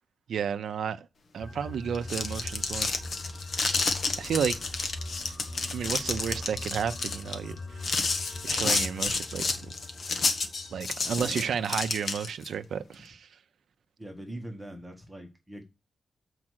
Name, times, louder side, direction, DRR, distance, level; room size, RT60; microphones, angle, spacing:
voice 1, 0.3-1.1 1.3-2.9 4.2-4.6 5.7-8.0 8.4-9.7 10.7-13.3, right 7 dB, 85° right, 0.6 m, -32 dB
sound 1, 1.4-12.2, left 2 dB, 30° left, 0.7 m, -42 dB
sound 2, 1.9-12.5, left 4 dB, 50° left, 1.3 m, -30 dB
voice 2, 14.0-15.6, right 1 dB, 10° right, 1.6 m, -42 dB
7.6 x 4.8 x 6.2 m
wide cardioid pair, 170°, 0 cm